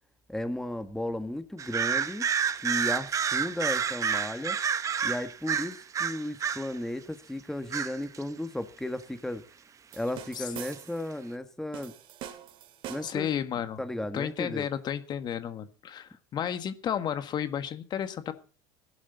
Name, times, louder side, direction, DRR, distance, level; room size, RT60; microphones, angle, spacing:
voice 1, 0.3-2.3 2.6-4.6 5.0-9.4 9.9-11.9 12.9-13.3 13.8-14.7, left 1 dB, 5° left, 9 dB, 1.6 m, -34 dB
sound 1, 1.6-6.7 7.7-8.2 10.7-10.8, right 7 dB, 30° right, 1.2 m, -29 dB
sound 2, 9.9-11.1 11.7-13.3, right 10 dB, 55° right, 2.5 m, -44 dB
voice 2, 13.0-13.8 14.1-18.3, left 9 dB, 45° left, 10 dB, 1.6 m, -32 dB
17.0 x 11.5 x 4.1 m, 0.37 s
supercardioid pair, 100°, 11 cm